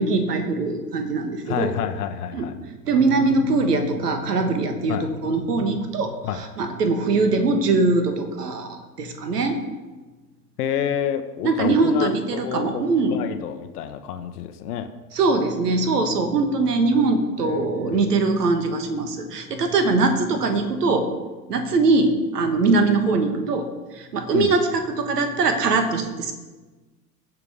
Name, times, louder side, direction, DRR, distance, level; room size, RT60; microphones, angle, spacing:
voice 1, 0.0-1.7 2.3-2.5 2.8-9.6 11.4-13.2 15.1-21.1 21.5-26.3, right 3 dB, 75° right, 7 dB, 1.4 m, -22 dB
voice 2, 1.5-2.5 4.9-5.1 6.2-6.4 10.6-12.8 13.1-14.9 17.4-18.0 24.3-24.5, left 9 dB, 65° left, 8 dB, 0.9 m, -28 dB
16.5 x 5.9 x 3.5 m, 1.2 s
figure-of-eight pair, 80°, 48 cm